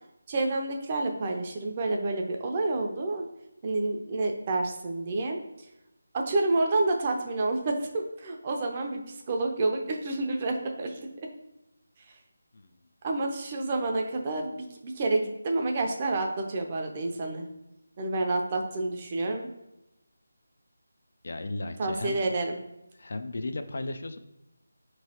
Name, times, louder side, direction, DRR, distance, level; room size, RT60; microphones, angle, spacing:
voice 1, 0.3-3.3 3.6-5.4 6.1-9.0 9.3-11.0 13.0-17.5 18.0-19.5 21.8-22.6, right 2 dB, 30° right, 2 dB, 0.5 m, -29 dB
voice 2, 21.2-22.2 22.9-24.2, left 2 dB, 60° left, 8 dB, 0.3 m, -35 dB
4.6 x 3.0 x 2.8 m, 0.90 s
figure-of-eight pair, 160°, 0 cm